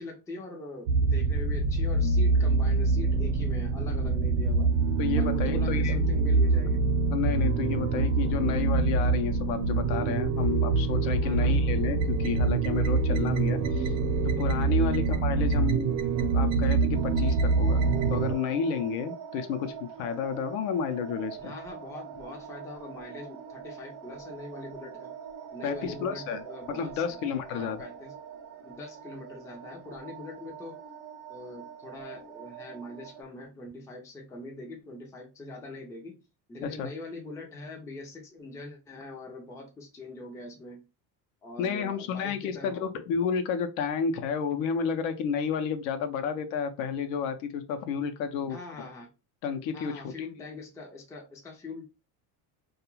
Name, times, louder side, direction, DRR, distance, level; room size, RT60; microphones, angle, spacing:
voice 1, 0.0-4.8 5.2-6.9 11.2-11.6 14.8-14.9 21.4-25.1 25.5-27.2 27.5-28.1 28.6-30.8 31.3-36.2 36.5-40.9 41.4-42.9 48.5-49.1 49.7-51.9, left 2 dB, 5° left, 0.4 m, -42 dB
sound 1, 0.9-18.3, right 4 dB, 80° right, 0.8 m, -25 dB
voice 2, 5.0-6.0 7.1-14.0 14.2-16.0 16.3-21.5 25.6-26.4 26.7-27.9 36.6-36.9 41.6-48.9 49.4-50.3, left 7 dB, 70° left, 0.7 m, -31 dB
sound 2, 16.9-33.2, right 7 dB, 45° right, 0.6 m, -44 dB
2.3 x 2.2 x 3.0 m
cardioid pair, 135°, 50 cm